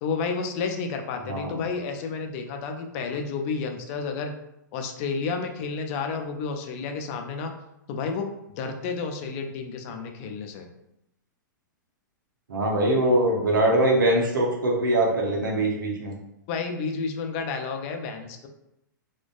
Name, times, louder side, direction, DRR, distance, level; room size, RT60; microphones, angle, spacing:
voice 1, 0.0-4.3 4.7-7.5 7.9-10.7 16.5-18.5, left 5 dB, 40° left, 4 dB, 0.4 m, -31 dB
voice 2, 1.2-1.7 12.5-16.1, right 1 dB, 75° right, -1 dB, 0.7 m, -22 dB
2.4 x 2.1 x 2.4 m, 0.83 s
hypercardioid pair, 115°, 11 cm